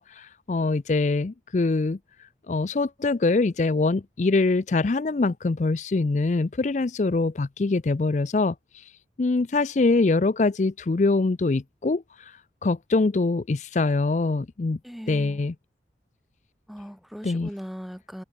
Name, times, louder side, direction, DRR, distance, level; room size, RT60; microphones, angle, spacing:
voice 1, 0.0-2.0 2.5-8.9 9.2-14.8 15.1-15.5 17.2-17.5, left 3 dB, 40° left, 0.4 m, -24 dB
voice 2, 14.8-15.4 16.7-18.2, equal, ahead, 2.4 m, -39 dB
head